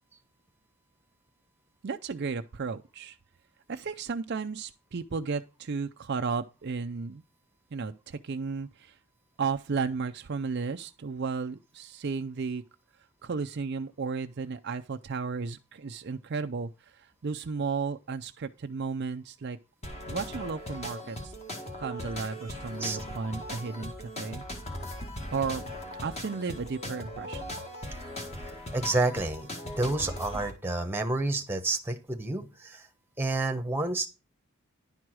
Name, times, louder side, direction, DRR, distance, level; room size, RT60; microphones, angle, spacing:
voice 1, 1.8-3.2 3.7-7.2 7.7-9.0 9.4-12.6 13.2-19.6 20.1-21.3 21.8-24.4 25.3-25.6 26.0-27.5, right 5 dB, 50° right, 0.4 m, -34 dB
sound 1, 19.8-30.5, left 1 dB, 30° left, 1.8 m, -39 dB
voice 2, 28.7-29.5 29.8-32.9 33.2-34.1, right 2 dB, 10° right, 1.1 m, -29 dB
11.0 x 4.7 x 6.1 m
head